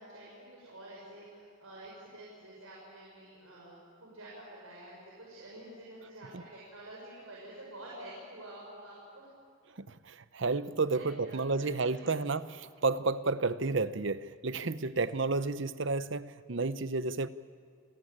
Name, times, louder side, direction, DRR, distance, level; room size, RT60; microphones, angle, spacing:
voice 1, 0.0-9.3 10.9-12.2, right 1 dB, 80° right, -4 dB, 6.2 m, -49 dB
voice 2, 9.7-17.3, right 3 dB, 60° right, 14 dB, 0.8 m, -31 dB
28.0 x 17.5 x 8.8 m, 2.2 s
head